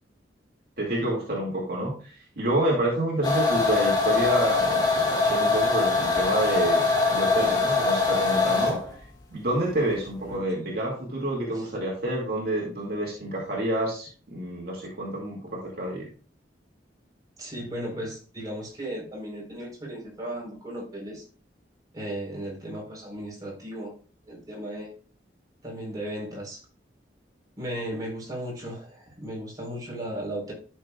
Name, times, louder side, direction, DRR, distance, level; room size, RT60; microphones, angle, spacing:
voice 1, 0.8-8.8 9.3-16.1, right 1 dB, 55° right, -3 dB, 2.3 m, -28 dB
sound 1, 3.2-8.9, left 3 dB, 20° left, 1.9 m, -23 dB
voice 2, 17.4-21.2 21.9-23.9 24.3-24.9 25.6-26.6 27.6-30.5, right 1 dB, 20° right, -3 dB, 4.3 m, -36 dB
12.0 x 6.6 x 2.4 m, 0.38 s
head